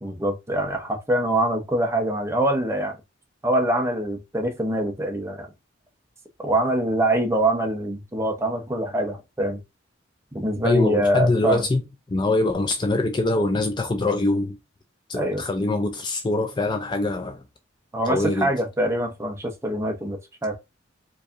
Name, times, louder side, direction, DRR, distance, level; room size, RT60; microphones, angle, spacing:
voice 1, 0.0-3.0 3.4-5.5 6.4-9.6 10.3-11.7 15.1-15.4 17.9-20.6, right 1 dB, 15° right, 0.8 m, -24 dB
voice 2, 10.6-11.8 12.1-14.6 15.1-17.4 18.1-18.5, left 2 dB, 25° left, 0.4 m, -23 dB
4.6 x 2.7 x 2.5 m
head